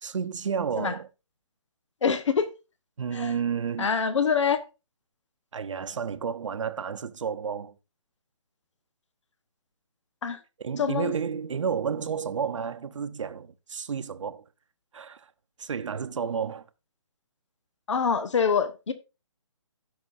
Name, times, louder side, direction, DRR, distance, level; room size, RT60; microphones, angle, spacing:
voice 1, 0.0-1.1 3.0-4.0 5.5-7.7 10.6-14.4 14.9-15.3 15.6-16.6, right 7 dB, 70° right, 0.9 m, -31 dB
voice 2, 2.0-2.5 3.1-3.3 3.8-4.6 10.2-10.4 10.8-11.1 17.9-18.9, left 6 dB, 70° left, 1.1 m, -25 dB
16.5 x 5.9 x 2.6 m
hypercardioid pair, 165°, 16 cm